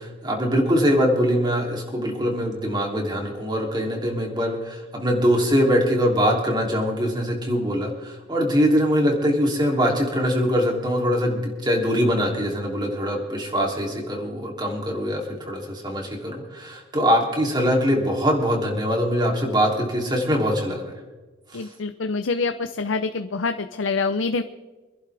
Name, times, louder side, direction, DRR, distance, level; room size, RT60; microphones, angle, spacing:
voice 1, 0.0-20.9 21.5-21.7, equal, 20° right, 0 dB, 3.0 m, -23 dB
voice 2, 21.5-24.4, left 4 dB, 85° left, 9 dB, 0.7 m, -26 dB
26.0 x 11.0 x 3.5 m, 1.2 s
head